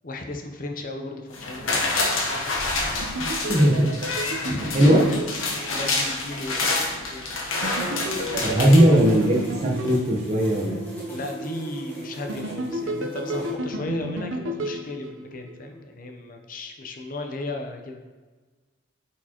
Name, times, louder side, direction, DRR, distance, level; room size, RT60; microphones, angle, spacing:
voice 1, 0.0-2.8 4.4-5.2 5.7-6.7 7.1-7.2 11.1-18.0, left 2 dB, 45° left, 4 dB, 0.7 m, -35 dB
sound 1, 1.3-9.5 9.9-10.0, left 3 dB, 85° left, 1.1 m, -28 dB
sound 2, 3.0-6.1 7.6-10.8 12.3-15.7, right 1 dB, 80° right, 0.7 m, -33 dB
voice 2, 3.2-3.9 4.7-5.0 8.4-10.9, equal, 35° right, -2 dB, 0.9 m, -19 dB
sound 3, 7.8-13.5, right 2 dB, 10° left, 1.5 m, -37 dB
8.9 x 4.4 x 2.9 m, 1.3 s
head